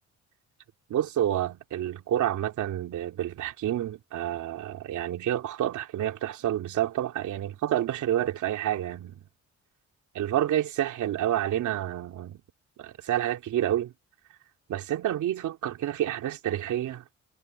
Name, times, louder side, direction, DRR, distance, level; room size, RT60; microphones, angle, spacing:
voice 1, 0.9-9.2 10.1-12.4 12.8-13.9 14.7-17.0, right 11 dB, 75° right, 3.2 m, -29 dB
cardioid pair, 90°, 30 cm